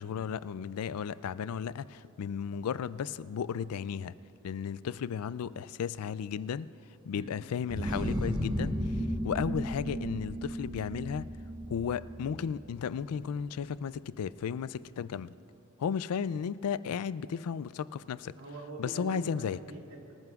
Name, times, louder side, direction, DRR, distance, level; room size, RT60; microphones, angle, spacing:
voice 1, 0.0-4.1 4.4-6.7 7.1-8.7 9.2-11.3 11.7-15.3 15.8-18.3 18.8-19.6, left 7 dB, 90° left, 17 dB, 0.4 m, -34 dB
sound 1, 7.7-13.2, equal, 20° right, 0.9 m, -34 dB
voice 2, 18.4-20.2, right 2 dB, 70° right, -1 dB, 2.1 m, -44 dB
24.5 x 14.0 x 2.4 m, 2.9 s
head